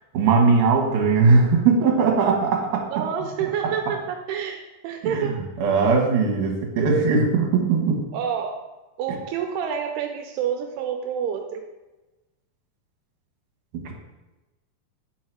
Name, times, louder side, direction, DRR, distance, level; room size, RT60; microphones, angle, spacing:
voice 1, 0.1-3.1 5.0-5.3 5.6-8.0 13.7-13.9, right 4 dB, 65° right, 0 dB, 2.3 m, -19 dB
voice 2, 2.9-5.5 8.1-8.6 9.0-11.7, right 7 dB, 85° right, 4 dB, 2.5 m, -28 dB
8.6 x 4.7 x 4.5 m, 1.1 s
omnidirectional pair, 4.7 m